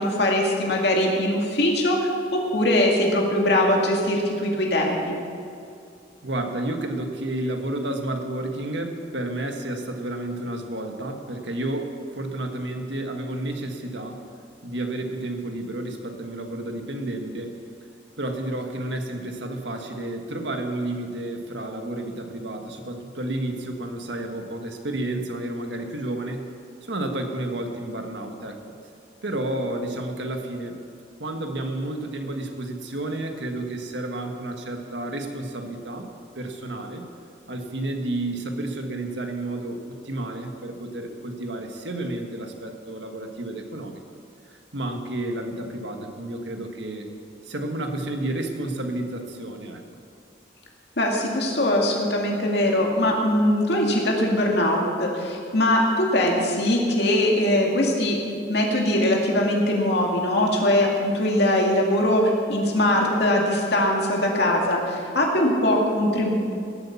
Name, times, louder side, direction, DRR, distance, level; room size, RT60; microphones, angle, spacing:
voice 1, 0.0-5.2 51.0-58.2 58.5-66.3, left 1 dB, 70° left, -1 dB, 2.1 m, -21 dB
voice 2, 6.2-14.2 14.6-17.5 18.2-26.5 26.8-28.6 29.2-30.8 31.2-36.1 36.3-37.0 37.5-44.0 44.7-47.1 47.4-49.8, right 1 dB, 85° right, 4 dB, 1.6 m, -31 dB
17.5 x 8.5 x 7.1 m, 2.4 s
head